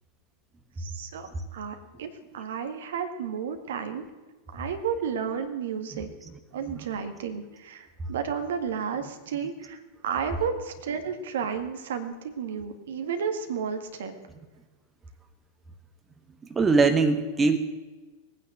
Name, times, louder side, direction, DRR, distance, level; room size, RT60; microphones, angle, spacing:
voice 1, 0.8-4.0 4.5-6.1 6.5-14.1, right 7 dB, 60° right, 7 dB, 1.8 m, -32 dB
voice 2, 16.5-17.6, right 4 dB, 15° right, 8 dB, 1.2 m, -22 dB
19.5 x 9.6 x 7.7 m, 1.2 s
figure-of-eight pair, 90°, 0 cm